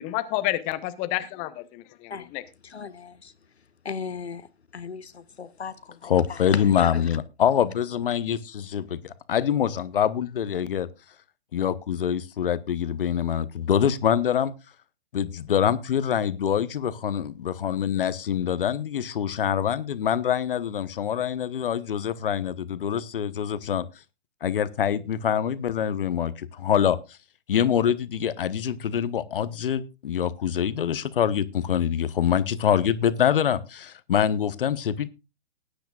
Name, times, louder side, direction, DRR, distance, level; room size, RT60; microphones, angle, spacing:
voice 1, 0.0-2.4, left 16 dB, 25° left, 1.0 m, -30 dB
voice 2, 2.7-3.3 3.8-4.5 4.7-7.0, left 6 dB, 75° left, 1.0 m, -36 dB
voice 3, 6.0-10.9 11.5-14.5 15.1-23.8 24.4-27.0 27.5-35.1, left 9 dB, 55° left, 1.1 m, -25 dB
19.0 x 10.0 x 2.4 m
figure-of-eight pair, 120°, 33 cm